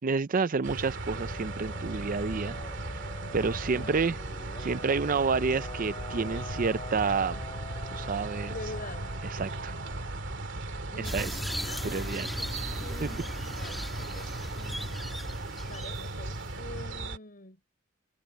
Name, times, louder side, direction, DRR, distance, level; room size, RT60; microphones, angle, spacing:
voice 1, 0.0-2.6 2.8-3.1 3.3-4.2 4.6-7.4 7.9-8.5 9.3-9.8 11.0-11.4 11.8-12.3 13.0-13.1, right 4 dB, 40° right, 0.5 m, -29 dB
sound 1, 0.6-17.2, right 2 dB, 60° right, 2.6 m, -37 dB
sound 2, 1.1-10.4, left 2 dB, 25° left, 2.1 m, -46 dB
voice 2, 8.5-9.1 10.9-14.3 14.6-15.0 15.7-17.6, left 2 dB, 45° left, 4.5 m, -45 dB
sound 3, 11.0-16.8, equal, ahead, 2.2 m, -38 dB
head